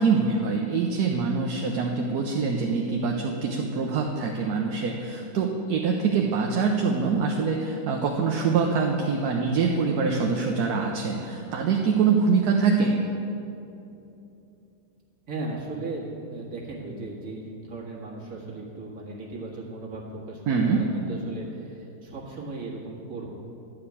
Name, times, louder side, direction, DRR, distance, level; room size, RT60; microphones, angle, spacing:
voice 1, 0.0-13.0 20.5-20.9, right 5 dB, 70° right, 1 dB, 1.2 m, -24 dB
voice 2, 15.3-23.3, right 2 dB, 55° right, -4 dB, 2.1 m, -37 dB
11.5 x 5.0 x 8.4 m, 2.8 s
omnidirectional pair, 1.8 m